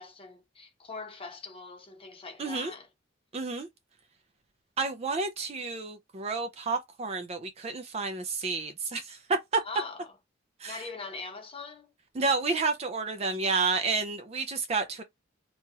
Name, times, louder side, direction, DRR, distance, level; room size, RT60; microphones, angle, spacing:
voice 1, 0.0-2.9 9.6-10.1 10.7-11.9, left 4 dB, 25° left, 0.8 m, -42 dB
voice 2, 2.4-2.7 3.3-3.7 4.8-9.6 10.6-10.9 12.1-15.0, right 4 dB, 30° right, 0.4 m, -30 dB
2.9 x 2.8 x 2.3 m
head